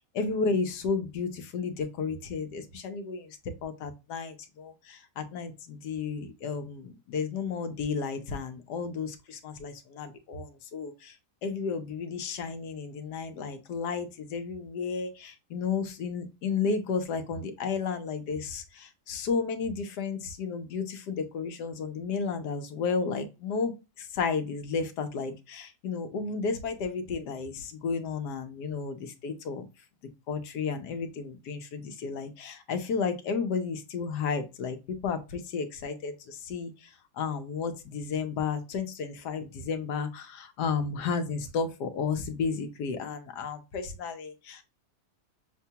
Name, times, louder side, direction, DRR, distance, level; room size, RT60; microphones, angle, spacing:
voice 1, 0.2-3.3 3.6-11.1 11.4-18.6 19.1-23.7 24.1-29.6 30.3-34.8 35.0-36.7 37.2-44.6, left 5 dB, 85° left, 7 dB, 1.4 m, -32 dB
6.6 x 2.3 x 2.8 m, 0.27 s
omnidirectional pair, 1.7 m